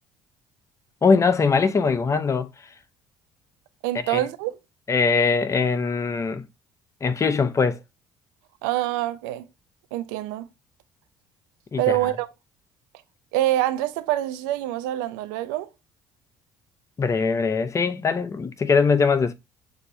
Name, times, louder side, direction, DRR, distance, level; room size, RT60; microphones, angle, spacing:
voice 1, 1.0-2.5 4.1-4.2 4.9-6.4 7.0-7.8 11.7-12.0 17.0-19.3, left 5 dB, 30° left, 0.7 m, -21 dB
voice 2, 3.8-4.6 8.6-9.5 9.9-10.5 11.8-12.3 13.3-15.7, right 14 dB, 85° right, 0.5 m, -25 dB
6.2 x 2.6 x 2.7 m
supercardioid pair, 70°, 10 cm